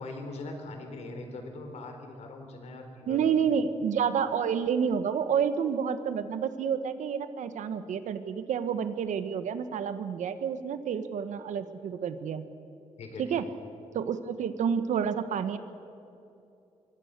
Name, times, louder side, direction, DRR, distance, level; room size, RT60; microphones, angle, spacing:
voice 1, 0.0-3.3 13.0-13.4, left 2 dB, 65° left, 5 dB, 4.0 m, -41 dB
voice 2, 3.1-12.4 13.2-13.4 13.9-15.6, right 7 dB, 90° right, 10 dB, 1.4 m, -29 dB
25.5 x 23.0 x 6.8 m, 2.7 s
wide cardioid pair, 175°, 12 cm